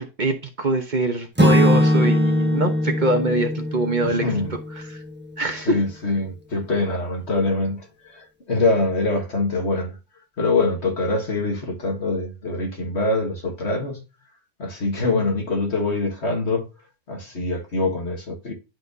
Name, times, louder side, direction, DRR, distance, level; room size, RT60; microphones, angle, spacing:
voice 1, 0.0-4.6 4.9-5.0 5.4-5.8, right 2 dB, 40° right, 1.1 m, -23 dB
Acoustic guitar / Strum, 1.4-5.3, left 1 dB, 10° right, 1.0 m, -21 dB
voice 2, 4.0-4.5 5.7-10.0 10.4-14.0 14.6-16.7 17.1-18.5, left 2 dB, 60° left, 2.0 m, -24 dB
11.5 x 4.3 x 2.7 m
omnidirectional pair, 1.3 m